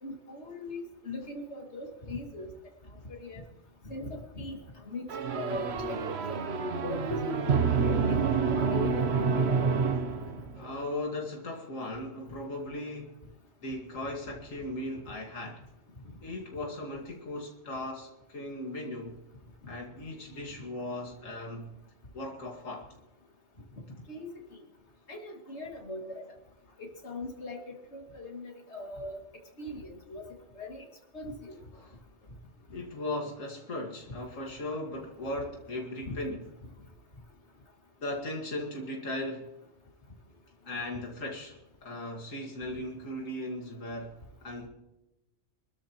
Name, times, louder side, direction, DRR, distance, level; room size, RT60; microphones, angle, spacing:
voice 1, 0.0-2.5 3.1-3.4 3.8-6.4 6.8-9.7 10.1-10.2 19.6-19.7 24.1-24.3 25.1-26.2 26.8-29.2 29.6-30.3 30.5-30.8 31.1-31.6 36.1-36.2, left 1 dB, 60° left, 1 dB, 2.7 m, -40 dB
sound 1, 5.1-10.7, right 5 dB, 60° right, 1.2 m, -28 dB
voice 2, 8.4-8.7 10.6-13.2 13.6-15.6 16.2-19.2 19.7-21.7 22.1-23.0 29.7-29.8 31.7-32.0 32.7-36.4 38.0-39.5 40.6-44.7, left 1 dB, 85° left, 0 dB, 2.4 m, -38 dB
26.5 x 13.5 x 3.0 m, 0.98 s
omnidirectional pair, 1.3 m